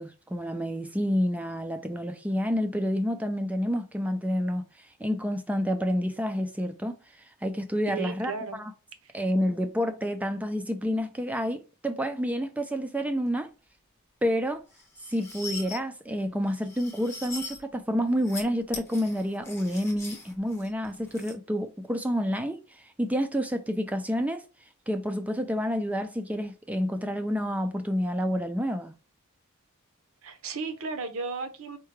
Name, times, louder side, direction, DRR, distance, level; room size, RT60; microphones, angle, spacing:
voice 1, 0.0-4.7 5.0-7.0 7.4-8.7 9.1-13.5 14.2-14.6 15.1-24.4 24.9-28.9, equal, 5° right, 0.4 m, -29 dB
voice 2, 7.9-8.6 9.0-9.1 30.2-31.8, right 4 dB, 70° right, 0.7 m, -35 dB
sound 1, 14.7-15.8 16.5-17.6 18.1-18.4 18.7-21.3, left 3 dB, 10° left, 0.8 m, -41 dB
4.6 x 2.2 x 3.1 m
head